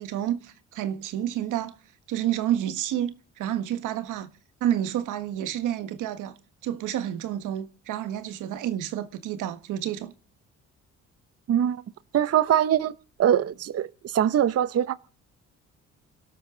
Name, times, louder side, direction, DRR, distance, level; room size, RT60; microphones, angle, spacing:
voice 1, 0.0-1.8 2.1-4.3 4.6-6.3 6.6-10.1, right 11 dB, 85° right, 1.6 m, -29 dB
voice 2, 12.1-12.9 13.2-14.9, right 10 dB, 55° right, 0.8 m, -22 dB
28.5 x 12.5 x 3.8 m
cardioid pair, 90°, 30 cm